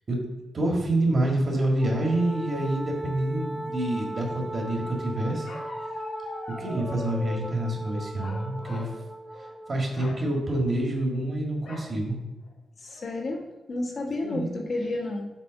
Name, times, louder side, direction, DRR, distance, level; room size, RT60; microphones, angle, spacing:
voice 1, 0.5-5.5 6.6-8.9 9.7-12.2 14.2-14.5, right 1 dB, 35° right, 0 dB, 1.8 m, -27 dB
Wind instrument woodwind instrument, 1.8-9.8, right 2 dB, 10° right, 0.5 m, -37 dB
Bark, 5.4-7.6 8.2-9.0 9.3-9.5 9.9-10.2 11.6-11.9 12.5-12.6 12.9-13.3, left 2 dB, 70° left, 1.9 m, -41 dB
voice 2, 12.8-15.3, left 2 dB, 45° left, 0 dB, 1.3 m, -31 dB
7.5 x 3.4 x 6.3 m, 1.1 s
wide cardioid pair, 135°, 0 cm